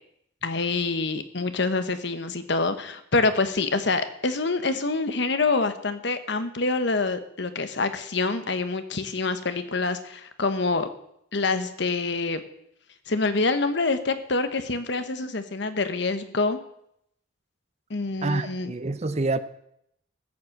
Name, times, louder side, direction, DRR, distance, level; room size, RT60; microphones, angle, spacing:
voice 1, 0.4-10.9 11.3-12.4 13.1-16.6 17.9-18.7, left 3 dB, 60° left, 1.1 m, -26 dB
voice 2, 18.2-19.4, right 3 dB, 35° right, 0.6 m, -27 dB
14.5 x 7.4 x 7.8 m
head